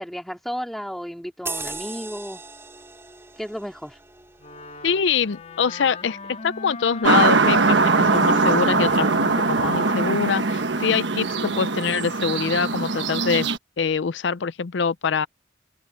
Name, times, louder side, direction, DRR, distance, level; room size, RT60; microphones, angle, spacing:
voice 1, 0.0-2.4 3.4-4.0, equal, ahead, 2.9 m, -33 dB
sound 1, 1.5-6.4 6.8-7.0, right 3 dB, 15° right, 4.8 m, -39 dB
Wind instrument woodwind instrument, 4.4-11.1, left 2 dB, 40° left, 3.6 m, -37 dB
voice 2, 4.8-6.2 6.4-13.5 13.8-15.3, left 6 dB, 75° left, 0.5 m, -24 dB
sound 2, 7.0-13.6, right 3 dB, 75° right, 1.3 m, -21 dB
open air
head